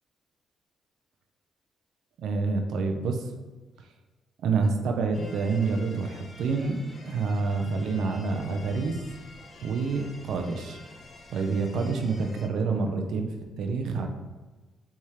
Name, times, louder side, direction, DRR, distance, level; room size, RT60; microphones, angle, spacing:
voice 1, 2.2-3.3 4.4-6.8 7.1-9.0 9.6-10.8 11.3-14.1, right 4 dB, 75° right, 4 dB, 0.5 m, -27 dB
sound 1, 5.1-12.5, left 2 dB, 35° left, 0.6 m, -48 dB
4.7 x 3.5 x 2.9 m, 1.2 s
cardioid pair, 90°, 0 cm